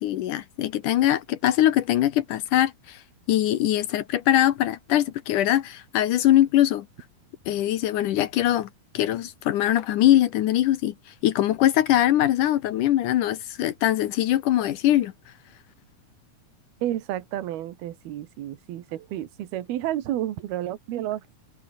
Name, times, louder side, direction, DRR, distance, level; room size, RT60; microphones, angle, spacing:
voice 1, 0.0-3.0 3.3-6.9 7.5-8.7 8.9-10.9 11.2-15.1, left 13 dB, 70° left, 2.2 m, -22 dB
voice 2, 16.8-21.4, right 13 dB, 80° right, 3.5 m, -31 dB
omnidirectional pair, 4.4 m